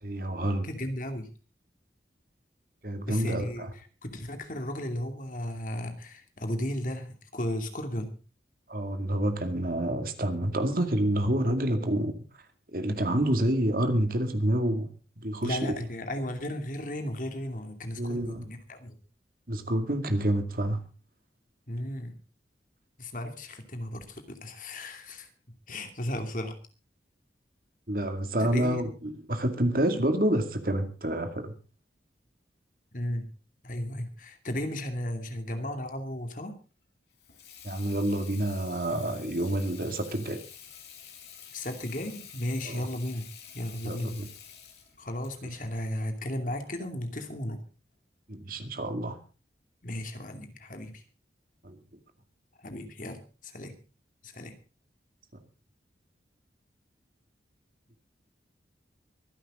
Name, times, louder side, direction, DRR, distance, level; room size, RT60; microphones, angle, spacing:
voice 1, 0.0-0.7 2.8-3.7 8.7-12.1 12.7-14.9 15.2-15.8 18.0-18.5 19.5-20.8 27.9-31.6 37.6-40.4 42.6-42.8 43.8-44.3 48.3-49.2 51.6-51.8, right 1 dB, 50° right, 2.3 m, -28 dB
voice 2, 0.6-1.3 3.1-3.7 4.0-8.2 15.4-19.0 21.7-22.2 23.0-26.6 28.4-28.9 32.9-33.3 33.6-36.6 41.5-43.3 43.5-44.2 45.0-47.6 49.8-51.0 52.6-53.8 54.2-54.6, left 1 dB, 45° left, 2.6 m, -35 dB
Water tap faucet / Sink (filling or washing), 37.1-46.7, left 8 dB, 70° left, 5.4 m, -49 dB
24.0 x 11.0 x 3.8 m
head